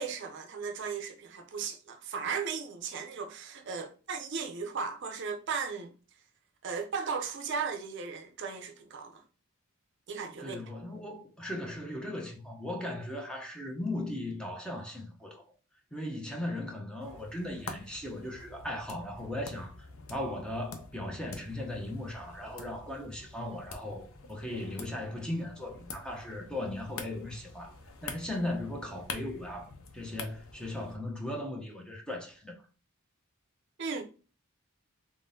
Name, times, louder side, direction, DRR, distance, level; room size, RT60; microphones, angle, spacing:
voice 1, 0.0-5.9 6.6-9.2 10.1-10.6 33.8-34.0, right 5 dB, 55° right, 0.5 m, -36 dB
voice 2, 10.4-15.4 15.9-27.8 28.0-32.6, left 1 dB, 5° left, 0.7 m, -37 dB
sound 1, 17.0-31.0, left 4 dB, 75° left, 0.6 m, -47 dB
3.6 x 3.6 x 2.6 m
head